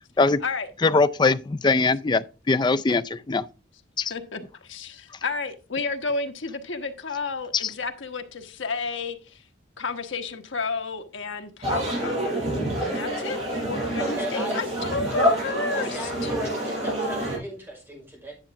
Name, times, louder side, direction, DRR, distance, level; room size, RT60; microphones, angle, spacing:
voice 1, 0.8-3.4 4.0-4.1, left 3 dB, 25° left, 0.4 m, -21 dB
voice 2, 4.1-9.4 9.8-12.4 12.8-16.3, left 4 dB, 80° left, 1.2 m, -32 dB
sound 1, 11.6-17.4, equal, 35° right, 5.2 m, -27 dB
voice 3, 14.0-14.7 15.1-15.2 15.7-18.3, equal, 10° right, 5.4 m, -36 dB
10.0 x 6.8 x 3.5 m
head